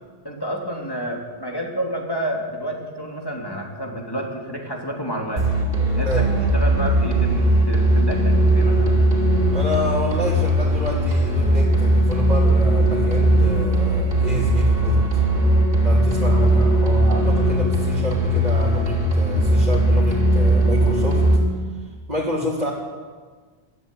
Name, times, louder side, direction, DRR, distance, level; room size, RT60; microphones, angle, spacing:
voice 1, 0.2-5.4 5.9-6.3 6.5-9.0, right 1 dB, 20° left, 0 dB, 3.3 m, -29 dB
sound 1, 5.4-21.4, right 1 dB, 60° right, 3.1 m, -18 dB
voice 2, 9.5-15.2 15.8-21.2 22.1-22.7, equal, 40° right, -6 dB, 3.2 m, -28 dB
21.0 x 13.5 x 9.3 m, 1.5 s
omnidirectional pair, 1.1 m